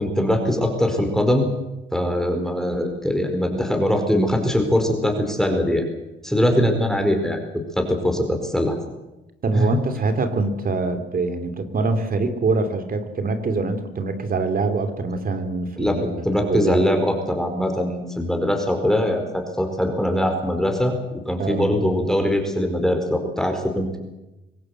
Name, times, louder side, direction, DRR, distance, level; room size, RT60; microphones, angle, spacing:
voice 1, 0.0-1.5 1.9-5.8 6.2-7.4 7.8-8.8 9.5-9.7 15.8-20.9 21.2-24.0, equal, ahead, 4 dB, 4.7 m, -22 dB
voice 2, 9.4-16.8 21.4-21.7, right 3 dB, 45° right, 8 dB, 3.1 m, -24 dB
24.5 x 18.0 x 7.9 m, 1.0 s
cardioid pair, 90°, 20 cm